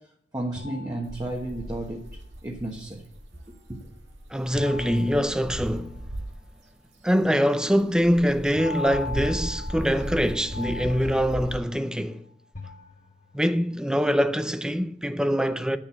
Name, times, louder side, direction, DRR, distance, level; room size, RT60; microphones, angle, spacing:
voice 1, 0.3-2.0 2.4-3.0 3.7-3.8, right 1 dB, 20° right, 1.2 m, -32 dB
sound 1, 0.6-1.8 4.5-6.2 8.5-12.1 12.5-13.5, left 4 dB, 40° left, 1.1 m, -39 dB
sound 2, 1.0-6.5 7.0-11.6, right 1 dB, 90° right, 1.8 m, -37 dB
voice 2, 4.3-6.0 7.0-12.2 13.3-15.8, equal, 5° right, 0.5 m, -24 dB
10.0 x 7.2 x 7.0 m
head